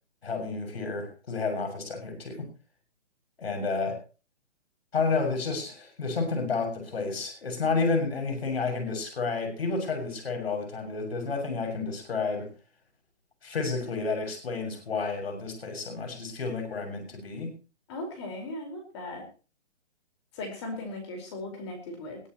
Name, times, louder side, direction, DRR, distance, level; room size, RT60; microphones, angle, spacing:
voice 1, 0.2-2.5 3.4-4.0 4.9-12.5 13.4-17.5, left 4 dB, 60° left, 5 dB, 7.0 m, -30 dB
voice 2, 17.9-19.3 20.3-22.2, left 2 dB, 25° left, 4 dB, 4.8 m, -37 dB
21.5 x 14.0 x 3.1 m, 0.34 s
hypercardioid pair, 170°, 34 cm